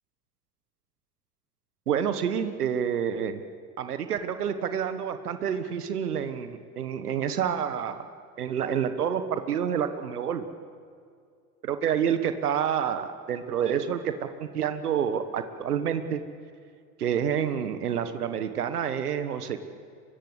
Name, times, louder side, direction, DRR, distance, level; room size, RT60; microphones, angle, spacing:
voice 1, 1.9-3.4 3.8-8.1 8.4-10.4 11.6-14.1 14.4-16.2 17.0-19.6, right 8 dB, 85° right, 9 dB, 1.4 m, -28 dB
24.0 x 22.0 x 8.1 m, 2.2 s
hypercardioid pair, 75°, 45 cm